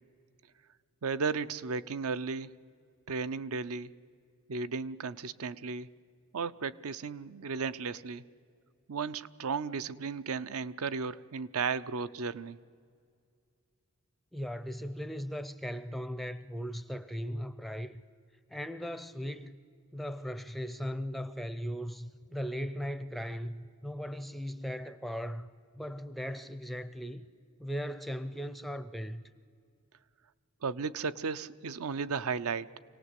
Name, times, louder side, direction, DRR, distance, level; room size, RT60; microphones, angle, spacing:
voice 1, 1.0-2.5 3.1-3.9 4.5-5.9 6.3-8.2 8.9-12.6 30.6-32.8, right 5 dB, 70° right, 0.6 m, -34 dB
voice 2, 14.3-18.0 18.5-19.6 19.9-25.5 25.8-27.3 27.6-29.2, equal, ahead, 0.5 m, -38 dB
25.5 x 18.5 x 8.3 m
head